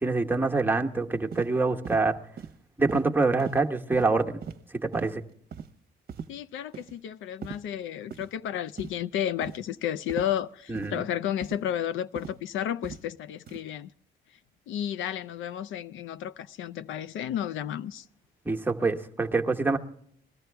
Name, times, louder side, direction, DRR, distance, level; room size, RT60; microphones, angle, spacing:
voice 1, 0.0-2.2 2.8-4.4 4.8-5.2 10.7-11.1 18.5-19.8, right 3 dB, 10° right, 1.1 m, -25 dB
sound 1, 1.3-1.5 1.8-2.0 2.4-2.5 2.9-3.1 3.4-3.6 3.9-4.1 4.4-4.6 4.9-5.1 5.5-5.7 6.1-6.3 6.7-6.9 7.4-7.6 8.1-8.3 8.8-9.0 9.4-9.6 10.1-10.3 10.7-10.9 11.4-11.6 12.2-12.4 12.8-13.0 13.5-13.6, right 7 dB, 50° right, 0.9 m, -38 dB
voice 2, 6.3-13.9 14.7-18.1, left 10 dB, 80° left, 0.5 m, -32 dB
21.0 x 13.5 x 3.4 m
cardioid pair, 90°, 20 cm